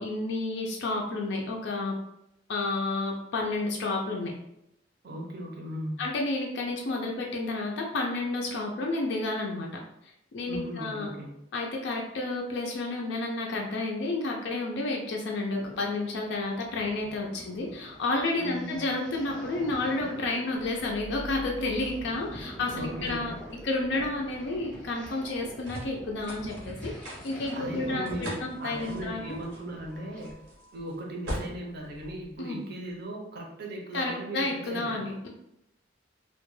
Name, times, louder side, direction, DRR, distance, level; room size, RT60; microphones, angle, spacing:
voice 1, 0.0-2.0 2.5-4.3 6.0-9.7 10.0-11.1 11.5-29.4 32.4-32.6 33.9-35.3, left 2 dB, 65° left, 0 dB, 0.4 m, -31 dB
voice 2, 5.0-6.0 10.5-11.3 17.2-17.3 18.4-18.8 22.7-23.4 27.5-30.4 30.7-35.1, right 1 dB, 55° right, 0 dB, 0.6 m, -38 dB
sound 1, 15.5-30.2, equal, 5° left, 0.5 m, -46 dB
sound 2, 20.6-32.9, equal, 85° right, 0.8 m, -43 dB
2.2 x 2.2 x 3.0 m, 0.82 s
head